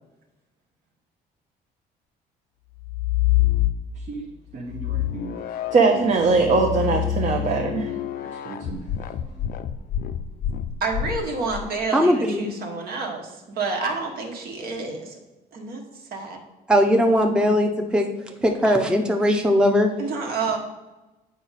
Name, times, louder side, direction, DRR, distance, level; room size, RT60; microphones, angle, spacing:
sound 1, 2.8-4.2 4.7-11.6, left 12 dB, 60° left, 0.5 m, -26 dB
voice 1, 4.5-5.4 5.7-7.9 8.4-8.8, right 4 dB, 45° right, 1 dB, 0.8 m, -22 dB
voice 2, 10.8-15.2 15.5-15.8 16.1-16.4 20.0-20.6, right 4 dB, 65° right, 2 dB, 1.4 m, -29 dB
voice 3, 11.9-12.5 16.7-18.1 18.4-19.9, equal, 5° right, 2 dB, 0.7 m, -19 dB
7.5 x 5.1 x 4.1 m, 1.1 s
cardioid pair, 110°, 17 cm